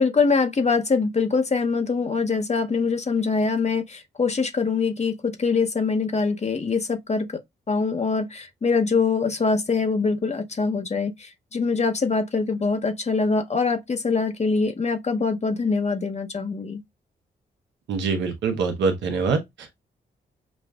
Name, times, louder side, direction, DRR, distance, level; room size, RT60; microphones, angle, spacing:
voice 1, 0.0-7.3 7.7-16.8, left 4 dB, 40° left, 0.8 m, -23 dB
voice 2, 17.9-19.8, right 5 dB, 85° right, 0.9 m, -25 dB
6.0 x 2.4 x 2.3 m
supercardioid pair, 50°, 18 cm